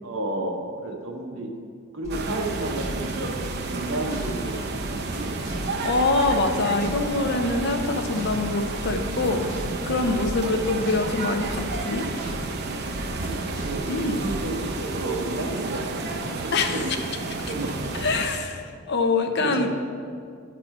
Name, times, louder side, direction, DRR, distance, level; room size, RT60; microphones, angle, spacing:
voice 1, 0.0-1.5 1.9-3.1 3.7-5.4 13.1-15.8 16.1-16.9 17.5-18.0 19.2-19.7, right 2 dB, 70° right, 1 dB, 1.0 m, -32 dB
sound 1, 2.0-4.3 4.6-7.2 7.4-11.1 11.4-12.5 12.9-14.4, equal, 15° right, 1.6 m, -36 dB
sound 2, 2.1-18.3, right 3 dB, 50° right, 0.6 m, -31 dB
voice 2, 5.8-9.4 9.8-12.1 13.9-14.2 16.5-16.8 17.4-17.5 18.0-19.7, left 3 dB, 50° left, 5 dB, 0.6 m, -24 dB
10.0 x 4.3 x 5.4 m, 2.3 s
head